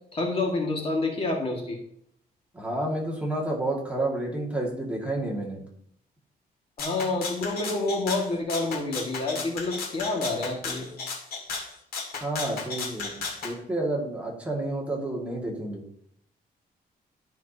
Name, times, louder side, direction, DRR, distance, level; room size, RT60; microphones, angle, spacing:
voice 1, 0.1-1.8 6.8-10.9, left 2 dB, 35° left, 0 dB, 1.9 m, -28 dB
voice 2, 2.5-5.6 12.2-15.8, right 1 dB, 10° right, -3 dB, 2.0 m, -30 dB
Rattle (instrument), 6.8-13.5, left 4 dB, 70° left, 2.2 m, -35 dB
13.0 x 6.0 x 2.8 m, 0.67 s
cardioid pair, 150°, 16 cm